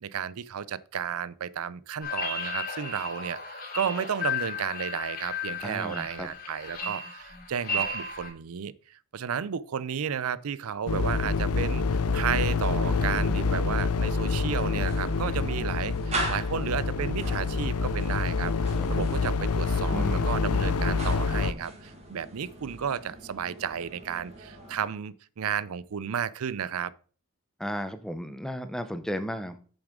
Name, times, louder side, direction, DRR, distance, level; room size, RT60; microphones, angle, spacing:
voice 1, 0.0-26.9, right 7 dB, 75° right, 0.5 m, -33 dB
sound 1, 2.0-8.3, left 3 dB, 40° left, 2.9 m, -34 dB
voice 2, 5.6-6.3 12.8-13.5 18.8-19.1 19.9-20.4 27.6-29.6, equal, ahead, 0.7 m, -35 dB
sound 2, 10.9-21.5, left 4 dB, 85° left, 0.6 m, -27 dB
sound 3, 14.7-24.9, right 1 dB, 30° right, 2.0 m, -40 dB
8.0 x 7.1 x 3.7 m
head